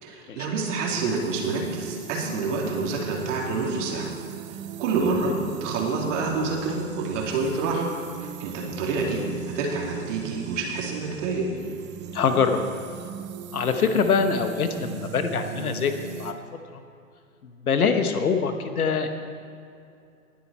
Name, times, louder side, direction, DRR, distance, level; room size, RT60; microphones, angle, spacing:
voice 1, 0.0-4.1 4.8-5.3 5.6-7.8 8.2-9.2 9.5-11.5, right 4 dB, 55° right, -1 dB, 3.1 m, -27 dB
sound 1, 0.9-16.3, right 7 dB, 25° right, 0.7 m, -38 dB
voice 2, 12.1-12.6 13.5-15.9 16.2-16.3 16.7-16.8 17.4-19.1, left 6 dB, 75° left, 7 dB, 1.3 m, -24 dB
19.5 x 7.6 x 4.3 m, 2.5 s
hypercardioid pair, 110°, 44 cm